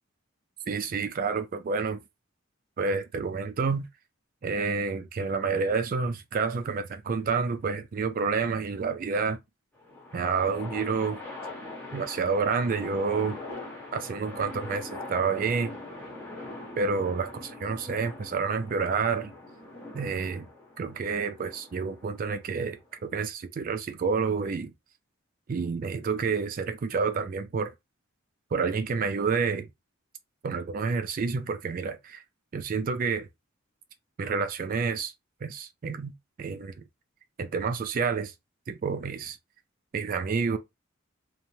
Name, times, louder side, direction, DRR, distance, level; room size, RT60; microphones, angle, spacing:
voice 1, 0.7-2.0 2.8-3.9 4.4-9.4 10.1-11.2 11.9-13.4 13.9-15.8 16.8-19.3 19.9-20.5 20.8-24.7 25.5-27.7 28.5-29.7 30.4-32.2 32.5-33.3 34.2-35.1 35.4-36.7 37.4-38.3 38.7-39.4 39.9-40.6, right 5 dB, 40° right, 0.3 m, -29 dB
sound 1, 9.7-23.2, left 2 dB, 10° left, 0.9 m, -42 dB
3.0 x 2.1 x 2.7 m
head